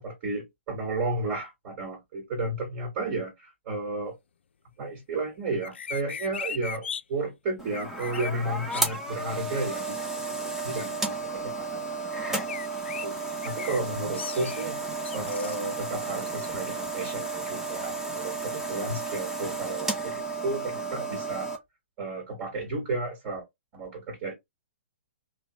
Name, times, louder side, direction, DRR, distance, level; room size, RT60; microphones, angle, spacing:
voice 1, 0.0-4.1 4.8-12.6 13.0-13.2 13.4-14.8 15.1-21.5 22.0-23.4 23.7-24.3, right 2 dB, 40° right, 1.4 m, -33 dB
sound 1, 5.6-7.0 7.7-8.3 8.7-9.0 12.3-13.1 13.4-13.8 14.1-14.6 15.0-15.6, left 7 dB, 65° left, 0.3 m, -37 dB
sound 2, 7.6-21.6, right 3 dB, 5° right, 0.7 m, -33 dB
3.0 x 2.2 x 2.8 m
figure-of-eight pair, 120°, 7 cm